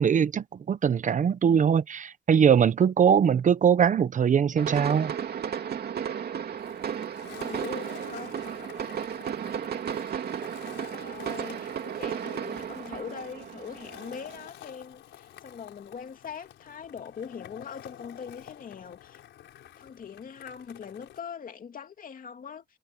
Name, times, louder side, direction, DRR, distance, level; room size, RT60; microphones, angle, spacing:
voice 1, 0.0-5.1, right 7 dB, 45° right, 0.8 m, -22 dB
Fireworks on the street, 4.6-14.5, right 8 dB, 60° right, 2.7 m, -34 dB
Skateboard, 6.6-21.2, left 11 dB, 80° left, 4.5 m, -50 dB
voice 2, 7.2-8.3 10.7-19.2 19.8-22.6, left 7 dB, 50° left, 2.7 m, -42 dB
cardioid pair, 110°, 19 cm